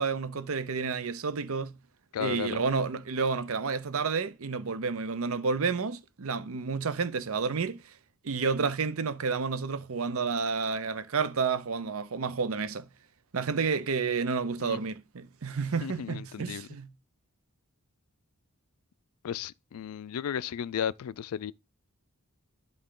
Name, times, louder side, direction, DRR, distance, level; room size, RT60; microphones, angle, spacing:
voice 1, 0.0-1.7 2.2-7.8 8.2-12.9 13.3-16.9, right 5 dB, 70° right, 0.7 m, -30 dB
voice 2, 2.1-2.6 14.6-14.8 15.8-16.7 19.2-21.5, left 8 dB, 75° left, 0.3 m, -34 dB
11.0 x 3.8 x 3.8 m
head